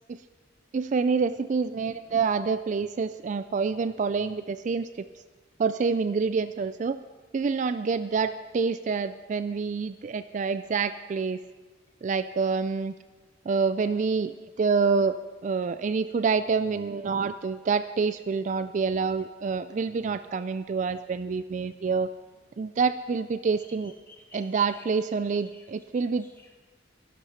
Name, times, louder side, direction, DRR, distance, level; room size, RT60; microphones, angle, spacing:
voice 1, 0.7-5.1 5.6-7.0 7.3-11.4 12.0-13.0 13.5-15.1 15.4-22.1 22.6-23.9 24.3-26.3, right 5 dB, 40° right, 12 dB, 0.3 m, -27 dB
voice 2, 23.8-24.8 25.3-25.7 25.9-26.6, left 2 dB, 10° left, 1 dB, 1.9 m, -53 dB
12.0 x 11.5 x 5.7 m, 1.3 s
head